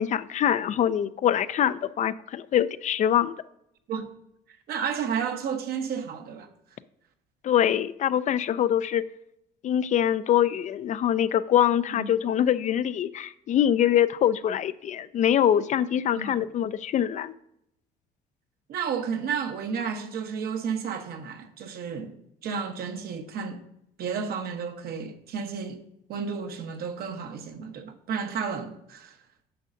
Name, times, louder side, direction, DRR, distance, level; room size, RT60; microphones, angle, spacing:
voice 1, 0.0-3.3 7.4-9.0 9.6-17.3, left 10 dB, 45° left, 0.4 m, -24 dB
voice 2, 4.7-6.5 11.9-12.1 16.1-16.4 18.7-22.2 22.4-23.6 24.0-25.8 26.1-29.2, right 6 dB, 65° right, 1.0 m, -32 dB
9.1 x 6.3 x 2.6 m
cardioid pair, 110°, 17 cm